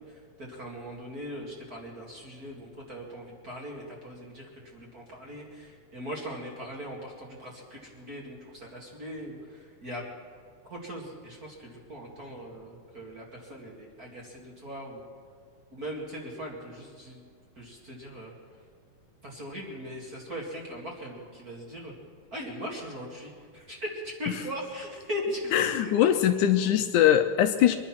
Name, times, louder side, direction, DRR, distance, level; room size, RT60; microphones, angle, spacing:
voice 1, 0.0-10.0 10.6-15.0 15.7-17.2 17.6-18.3 19.2-21.9 22.3-26.7, equal, 30° right, -2 dB, 2.2 m, -40 dB
voice 2, 25.5-27.8, left 11 dB, 80° left, 7 dB, 2.0 m, -22 dB
23.5 x 10.5 x 5.9 m, 2.1 s
omnidirectional pair, 3.8 m